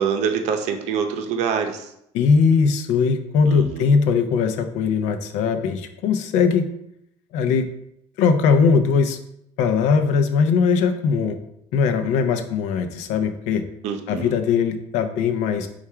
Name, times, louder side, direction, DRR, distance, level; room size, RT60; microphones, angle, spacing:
voice 1, 0.0-1.9 3.5-4.0 13.8-14.3, right 6 dB, 65° right, 5 dB, 0.6 m, -25 dB
voice 2, 2.1-6.7 7.3-7.7 8.2-9.2 9.6-11.4 11.7-13.6 14.1-15.7, left 5 dB, 70° left, 8 dB, 0.5 m, -20 dB
4.6 x 2.4 x 4.3 m, 0.76 s
cardioid pair, 160°, 12 cm